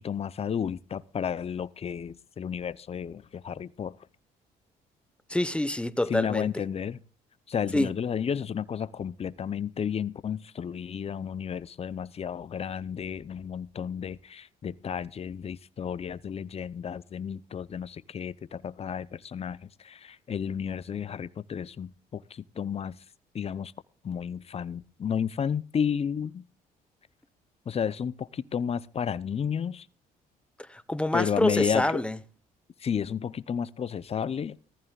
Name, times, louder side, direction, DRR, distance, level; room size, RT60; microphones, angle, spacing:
voice 1, 0.0-4.0 6.1-7.0 7.5-23.0 23.3-23.7 24.0-26.4 27.7-29.9 31.1-32.0 32.8-34.5, left 7 dB, 35° left, 0.7 m, -32 dB
voice 2, 5.3-6.5 7.7-7.9 30.7-32.2, left 1 dB, 5° left, 1.1 m, -26 dB
18.0 x 14.5 x 2.4 m
cardioid pair, 80°, 17 cm